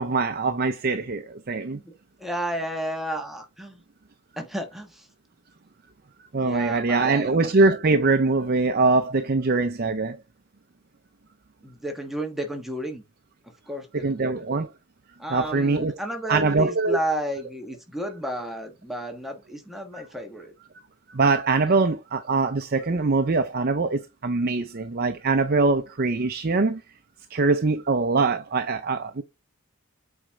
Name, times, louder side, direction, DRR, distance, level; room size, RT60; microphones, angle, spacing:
voice 1, 0.0-1.8 6.3-10.2 13.9-14.7 15.3-15.9 16.3-17.0 21.1-26.8 27.3-29.2, right 3 dB, 45° right, 0.6 m, -23 dB
voice 2, 2.2-3.8 4.4-5.1 6.4-7.4 11.6-13.0 13.7-14.4 15.2-20.5, right 1 dB, ahead, 1.3 m, -32 dB
8.1 x 4.3 x 3.6 m
head